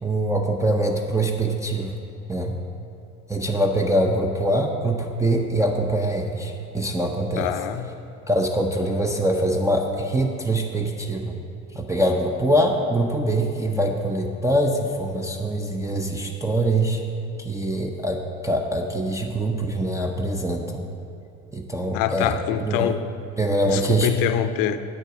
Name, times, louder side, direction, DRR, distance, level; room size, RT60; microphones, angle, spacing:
voice 1, 0.0-2.0 2.3-2.6 3.3-7.5 8.3-11.4 11.7-17.0 17.4-20.8 21.5-22.9 23.4-24.1, right 1 dB, 10° right, 1 dB, 0.7 m, -23 dB
voice 2, 7.4-8.0 21.9-23.0 23.7-24.8, left 11 dB, 65° left, 11 dB, 0.6 m, -25 dB
8.9 x 6.5 x 5.0 m, 2.8 s
hypercardioid pair, 70°, 37 cm